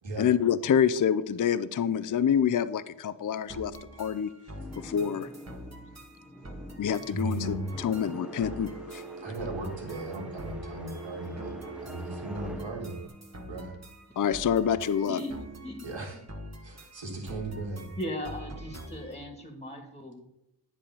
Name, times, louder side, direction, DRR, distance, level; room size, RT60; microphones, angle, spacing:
voice 1, 0.2-4.3 4.7-5.3 6.8-9.0 14.2-15.2, left 8 dB, 45° left, 13 dB, 0.4 m, -27 dB
sound 1, 3.5-19.2, equal, 35° right, 1.4 m, -45 dB
sound 2, 4.5-14.5, left 1 dB, ahead, 0.6 m, -47 dB
voice 2, 7.1-7.8 9.2-11.5 11.8-13.0 13.4-13.8 15.8-16.2 16.6-17.9, right 2 dB, 85° right, 0 dB, 2.0 m, -36 dB
Telephone, 8.1-13.1, right 6 dB, 60° right, 0.5 m, -44 dB
voice 3, 15.1-15.8 18.0-20.3, left 1 dB, 15° left, 5 dB, 1.6 m, -38 dB
10.0 x 3.5 x 6.7 m, 0.86 s
wide cardioid pair, 65°, 44 cm